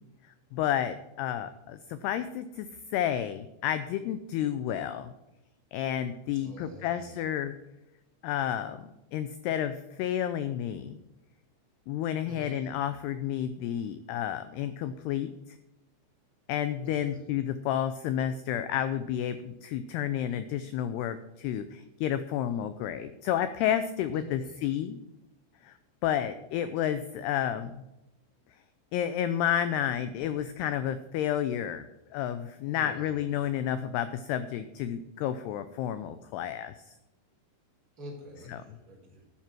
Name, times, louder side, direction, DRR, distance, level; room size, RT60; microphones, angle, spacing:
voice 1, 0.5-2.7 2.9-5.1 5.7-7.6 8.2-11.0 11.9-15.3 16.5-25.0 25.6-25.7 26.0-27.7 28.9-36.8 38.5-38.6, left 10 dB, 90° left, 11 dB, 2.3 m, -31 dB
voice 2, 6.3-7.2 12.3-12.5 16.8-17.2 24.1-24.6 32.7-33.1 38.0-39.2, left 1 dB, 20° right, -3 dB, 3.9 m, -46 dB
12.5 x 7.5 x 6.1 m, 0.95 s
omnidirectional pair, 5.4 m